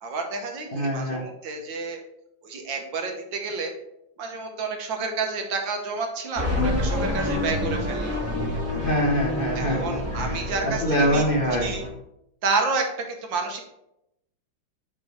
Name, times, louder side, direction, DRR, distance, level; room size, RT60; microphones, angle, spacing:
voice 1, 0.0-2.0 2.4-3.7 4.2-8.2 9.6-11.2 11.6-11.8 12.4-13.6, right 4 dB, 75° right, 3 dB, 1.8 m, -30 dB
voice 2, 0.7-1.2 8.7-11.7, equal, 30° left, -2 dB, 1.3 m, -25 dB
sound 1, 6.4-11.9, left 1 dB, 10° right, 1.9 m, -28 dB
5.3 x 5.3 x 4.9 m, 0.82 s
omnidirectional pair, 2.1 m